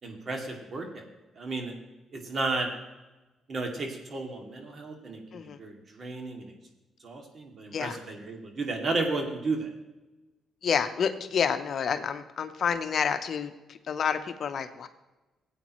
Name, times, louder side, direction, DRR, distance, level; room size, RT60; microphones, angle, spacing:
voice 1, 0.0-1.0 1.4-1.7 2.1-2.7 3.5-6.5 7.0-9.7, right 3 dB, 45° right, 2 dB, 2.4 m, -33 dB
voice 2, 10.6-14.9, left 7 dB, 55° left, 8 dB, 0.8 m, -29 dB
16.5 x 8.6 x 3.1 m, 1.1 s
cardioid pair, 90°, 0 cm